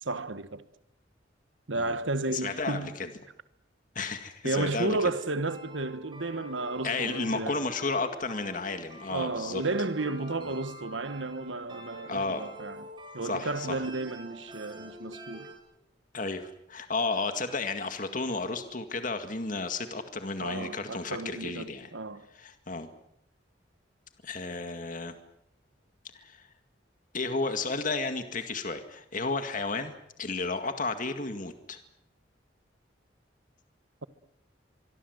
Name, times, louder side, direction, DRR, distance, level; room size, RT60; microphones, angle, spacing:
voice 1, 0.0-0.6 1.7-3.0 4.4-7.6 9.1-12.9 13.1-15.5 20.4-22.3, right 2 dB, 85° right, 1.5 m, -33 dB
voice 2, 2.3-3.1 4.0-5.0 6.8-9.6 12.1-12.5 13.2-13.9 16.1-21.9 22.3-22.9 24.2-25.2 26.1-26.5 27.1-31.8, left 3 dB, 45° left, 2.0 m, -32 dB
sound 1, 5.1-15.5, right 1 dB, 25° right, 5.8 m, -47 dB
25.0 x 23.5 x 8.1 m
head